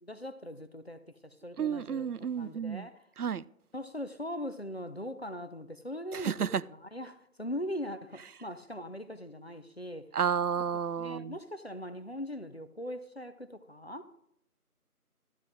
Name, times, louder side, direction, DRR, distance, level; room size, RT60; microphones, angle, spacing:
voice 1, 0.0-2.1 2.4-3.1 3.7-10.1 11.0-14.1, equal, 45° left, 0.7 m, -40 dB
voice 2, 1.6-2.9 3.2-3.4 6.1-6.6 10.1-11.3, right 7 dB, 80° right, 0.6 m, -31 dB
12.5 x 9.7 x 3.7 m
figure-of-eight pair, 175°, 45 cm